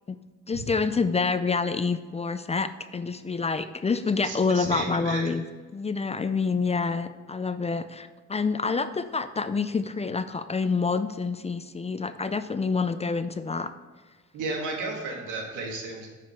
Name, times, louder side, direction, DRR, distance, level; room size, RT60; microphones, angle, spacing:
voice 1, 0.5-5.4 5.7-13.7, left 4 dB, 20° left, 11 dB, 0.4 m, -27 dB
voice 2, 4.2-5.2 14.3-16.1, right 3 dB, 85° right, 0 dB, 2.1 m, -33 dB
8.6 x 5.1 x 5.9 m, 1.4 s
cardioid pair, 90°, 30 cm